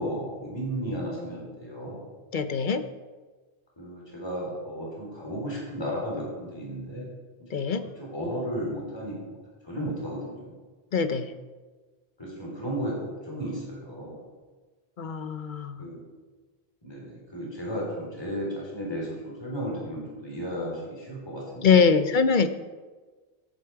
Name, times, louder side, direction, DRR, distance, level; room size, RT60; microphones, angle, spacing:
voice 1, 0.0-2.0 3.8-7.1 7.5-7.6 8.0-9.4 9.6-10.5 12.2-14.3 15.8-16.0 16.8-21.9, equal, 20° left, -4 dB, 3.8 m, -34 dB
voice 2, 2.3-2.8 7.5-7.8 10.9-11.3 15.0-15.8 21.6-22.5, left 5 dB, 50° left, 11 dB, 0.8 m, -23 dB
14.5 x 9.1 x 4.7 m, 1.4 s
omnidirectional pair, 1.1 m